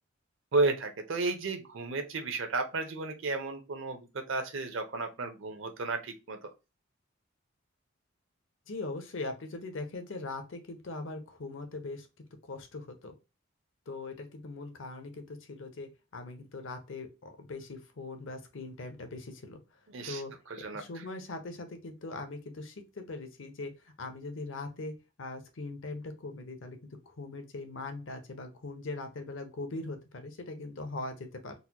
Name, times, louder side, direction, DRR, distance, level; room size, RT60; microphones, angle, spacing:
voice 1, 0.5-6.5 19.9-20.2 20.5-21.0, right 3 dB, 60° right, 6 dB, 0.6 m, -33 dB
voice 2, 8.7-12.1 12.4-13.1 13.9-19.6 20.0-20.3 20.6-26.8 27.1-31.5, left 2 dB, 60° left, 7 dB, 0.7 m, -41 dB
3.9 x 2.1 x 2.8 m, 0.27 s
head